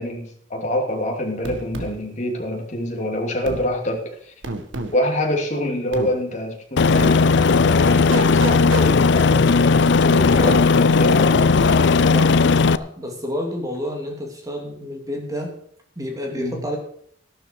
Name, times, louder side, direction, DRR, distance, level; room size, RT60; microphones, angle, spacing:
voice 1, 0.0-4.3 4.9-11.7 16.3-16.6, left 1 dB, 40° left, 0 dB, 3.0 m, -26 dB
sound 1, 1.4-1.9 3.4-3.6 4.4-5.0 5.9-6.1 6.9-7.1 8.1-8.9, right 2 dB, 80° right, 1.6 m, -28 dB
Aircraft, 6.8-12.8, left 4 dB, 60° left, 0.5 m, -16 dB
voice 2, 12.1-15.5 16.0-16.8, left 1 dB, 20° right, 2 dB, 3.1 m, -29 dB
13.0 x 12.0 x 4.8 m, 0.64 s
head